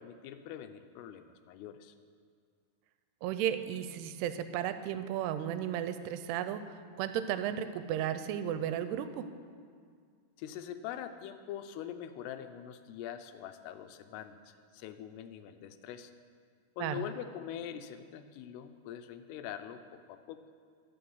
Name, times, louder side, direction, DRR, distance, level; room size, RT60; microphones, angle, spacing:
voice 1, 0.0-2.0 10.4-16.1 16.8-20.4, left 10 dB, 85° left, 9 dB, 2.6 m, -43 dB
voice 2, 3.2-9.3 16.8-17.0, right 10 dB, 85° right, 11 dB, 2.6 m, -34 dB
13.0 x 6.0 x 7.0 m, 2.1 s
omnidirectional pair, 4.8 m